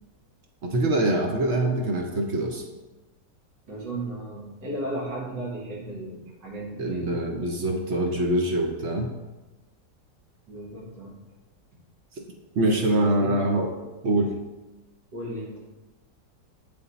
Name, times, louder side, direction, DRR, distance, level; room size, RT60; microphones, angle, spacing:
voice 1, 0.6-2.6 6.8-9.1 12.6-13.7 14.0-14.3, right 1 dB, 60° right, 1 dB, 0.7 m, -24 dB
voice 2, 3.7-7.1 10.5-11.2 12.7-13.4 15.1-15.6, right 1 dB, 75° right, -4 dB, 2.2 m, -35 dB
7.9 x 3.4 x 4.0 m, 1.1 s
omnidirectional pair, 1.9 m